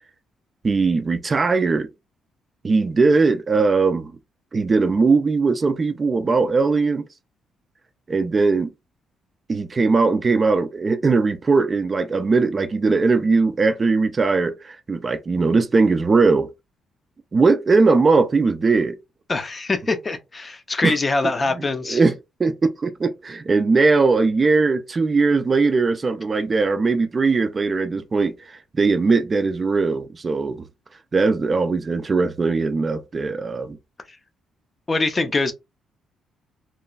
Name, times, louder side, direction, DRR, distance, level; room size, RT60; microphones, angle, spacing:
voice 1, 0.6-1.9 2.6-4.1 4.5-7.1 8.1-8.7 9.5-16.5 17.3-19.0 20.8-21.0 21.5-22.1 22.4-30.7 31.1-33.8, right 4 dB, 30° right, 0.3 m, -19 dB
voice 2, 19.3-22.0 34.9-35.5, left 3 dB, 30° left, 0.5 m, -23 dB
2.9 x 2.3 x 2.3 m
cardioid pair, 95°, 0 cm